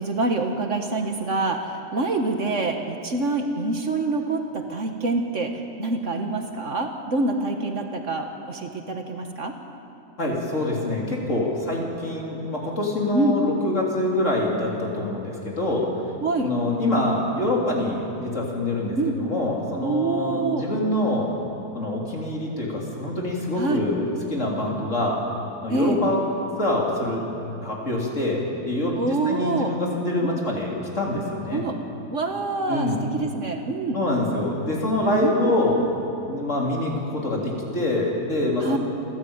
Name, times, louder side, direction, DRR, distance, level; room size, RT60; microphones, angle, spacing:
voice 1, 0.0-9.5 13.1-13.4 16.2-16.5 19.0-19.2 19.8-20.7 23.6-23.9 25.7-26.0 28.9-29.7 30.2-30.4 31.5-31.8 32.1-34.0 35.2-35.6 38.6-38.8, right 2 dB, 50° right, 4 dB, 1.6 m, -26 dB
voice 2, 10.2-15.9 16.4-21.3 21.7-25.2 25.6-26.2 26.6-27.2 27.6-31.6 32.7-33.1 33.9-35.8 36.3-38.8, left 1 dB, 50° left, -2 dB, 3.7 m, -25 dB
28.0 x 13.0 x 8.8 m, 2.8 s
omnidirectional pair, 1.7 m